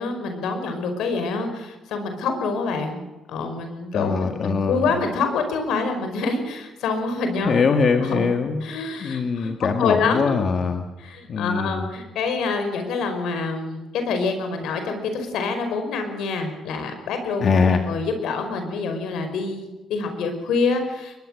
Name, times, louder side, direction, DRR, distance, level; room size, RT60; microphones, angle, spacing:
voice 1, 0.0-3.0 3.3-7.6 8.0-8.2 8.6-10.4 11.0-21.2, left 4 dB, 85° left, 6 dB, 5.2 m, -26 dB
voice 2, 3.9-4.9 7.4-8.7 9.0-10.9 11.3-11.8 17.4-17.8, left 5 dB, 50° left, 5 dB, 1.9 m, -22 dB
22.5 x 21.5 x 6.5 m, 1.1 s
cardioid pair, 90°, 0 cm